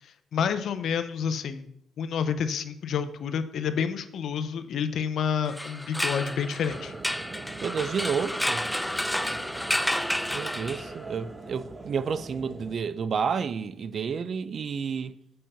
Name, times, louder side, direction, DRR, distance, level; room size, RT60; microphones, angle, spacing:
voice 1, 0.3-1.7 2.0-6.9, left 7 dB, 65° left, 0.7 m, -29 dB
sound 1, 5.5-11.2, left 1 dB, 5° left, 0.4 m, -30 dB
sound 2, 6.6-12.7, right 3 dB, 35° right, 0.9 m, -42 dB
voice 2, 7.6-8.6 10.3-15.2, right 6 dB, 50° right, 0.5 m, -30 dB
7.7 x 5.5 x 5.6 m
cardioid pair, 90°, 0 cm